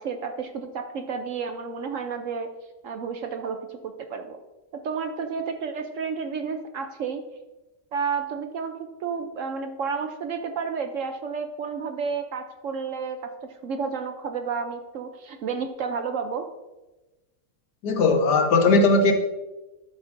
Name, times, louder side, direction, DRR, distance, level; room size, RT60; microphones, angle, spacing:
voice 1, 0.0-2.5 2.8-4.4 4.8-7.2 7.9-16.5, right 5 dB, 65° right, 6 dB, 0.8 m, -31 dB
voice 2, 17.8-19.1, left 3 dB, 80° left, 3 dB, 1.6 m, -18 dB
13.0 x 7.1 x 2.6 m, 1.1 s
omnidirectional pair, 1.7 m